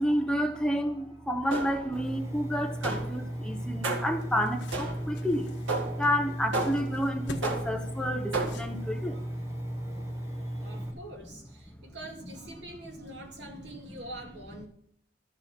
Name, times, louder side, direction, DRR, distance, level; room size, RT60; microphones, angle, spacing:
voice 1, 0.0-5.5 6.0-9.2, equal, 5° left, 4 dB, 0.8 m, -30 dB
sound 1, 1.5-2.0 2.8-3.3 3.8-4.3 4.7-5.2 5.7-6.1 6.5-7.0 7.4-7.9 8.3-8.8, right 3 dB, 90° right, 2.0 m, -33 dB
Engine, 1.9-10.9, right 1 dB, 15° right, 1.9 m, -36 dB
sound 2, 3.8-9.2, left 2 dB, 75° left, 1.2 m, -48 dB
voice 2, 8.8-9.4 9.8-14.7, right 1 dB, 70° right, 2 dB, 2.3 m, -46 dB
13.0 x 7.5 x 6.0 m, 0.69 s
head